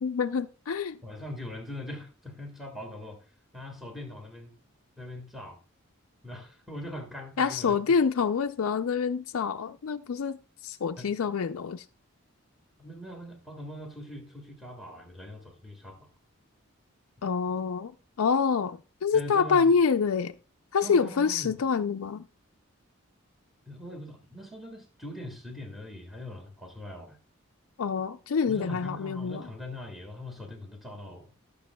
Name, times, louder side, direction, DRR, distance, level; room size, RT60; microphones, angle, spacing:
voice 1, 0.0-1.0 7.4-10.4 10.6-11.8 17.2-17.9 18.2-20.3 20.7-22.3 27.8-29.4, left 5 dB, 80° left, 0.4 m, -26 dB
voice 2, 1.0-4.5 5.0-5.6 6.2-8.0 11.0-11.1 12.8-16.1 19.1-19.7 20.8-21.5 23.6-27.2 28.5-31.3, left 1 dB, ahead, 1.6 m, -41 dB
19.0 x 6.7 x 2.2 m
head